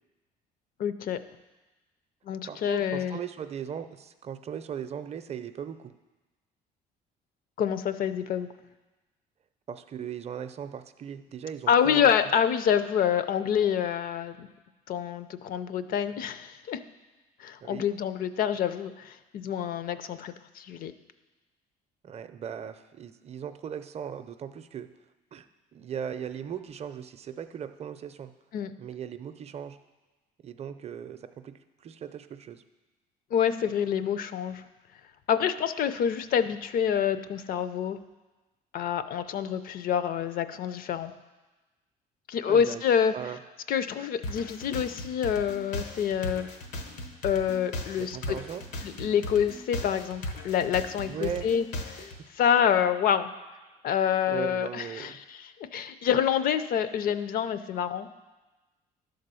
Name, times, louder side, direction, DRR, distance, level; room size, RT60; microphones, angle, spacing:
voice 1, 0.8-1.2 2.3-3.2 7.6-8.5 11.7-14.5 14.9-16.8 17.4-20.9 28.5-28.7 33.3-34.6 35.3-38.0 38.7-41.1 42.3-43.1 43.7-46.5 47.2-48.4 48.8-51.6 52.4-53.3 53.8-58.1, left 8 dB, 60° left, 12 dB, 0.5 m, -27 dB
voice 2, 2.5-5.9 9.7-12.0 17.6-17.9 22.0-24.9 25.3-25.5 25.7-28.3 28.8-29.8 30.4-32.6 42.5-42.8 43.1-43.4 44.0-44.1 48.0-48.6 51.1-51.5 54.3-55.2, right 8 dB, 40° right, 9 dB, 0.5 m, -38 dB
sound 1, 44.2-52.2, left 1 dB, 90° left, 1.1 m, -37 dB
11.0 x 3.9 x 6.8 m, 1.2 s
cardioid pair, 110°, 17 cm